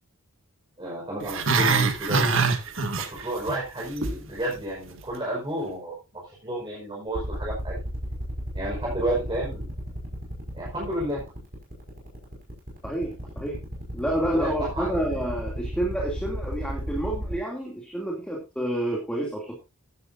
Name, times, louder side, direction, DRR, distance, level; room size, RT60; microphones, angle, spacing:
voice 1, 0.8-2.5 2.9-7.7 8.5-9.7 10.5-11.2 14.2-15.2, right 1 dB, 25° right, -5 dB, 5.2 m, -31 dB
Growling, 1.2-3.5 3.8-4.2 4.5-4.6, right 4 dB, 65° right, 1.9 m, -23 dB
sound 1, 7.1-17.3, equal, 45° right, 5.7 m, -32 dB
voice 2, 12.8-13.6 13.9-19.6, right 1 dB, 5° left, -2 dB, 2.7 m, -29 dB
14.5 x 11.0 x 2.7 m, 0.26 s
head